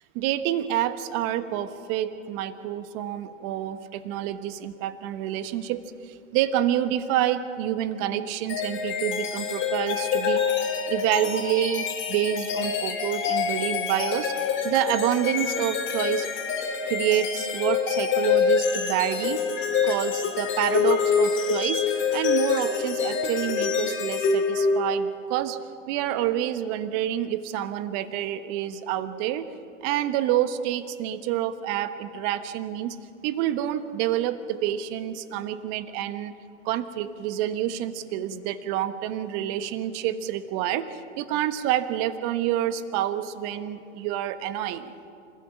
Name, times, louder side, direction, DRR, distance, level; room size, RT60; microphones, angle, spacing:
voice 1, 0.1-10.4 10.9-16.3 16.9-19.4 19.8-21.8 22.1-25.6 25.9-29.5 29.8-33.0 33.2-36.3 36.6-44.9, right 11 dB, 40° right, 11 dB, 1.3 m, -28 dB
sound 1, 8.5-25.1, left 6 dB, 30° left, 2.8 m, -26 dB
27.0 x 15.5 x 7.4 m, 2.5 s
hypercardioid pair, 115°, 39 cm